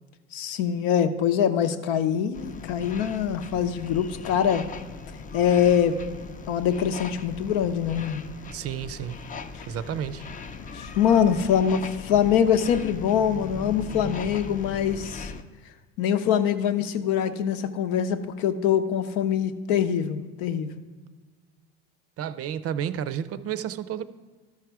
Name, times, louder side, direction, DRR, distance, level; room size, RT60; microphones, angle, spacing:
voice 1, 0.3-4.7 5.3-6.0 6.5-8.2 9.5-9.6 10.7-15.3 16.0-20.7, left 8 dB, 75° left, 9 dB, 0.8 m, -24 dB
sound 1, 2.3-15.4, left 5 dB, 25° left, 0.5 m, -39 dB
voice 2, 8.5-9.2 9.7-10.2 22.2-24.0, right 9 dB, 45° right, 14 dB, 0.5 m, -31 dB
13.0 x 4.9 x 4.6 m, 1.4 s
supercardioid pair, 90°, 33 cm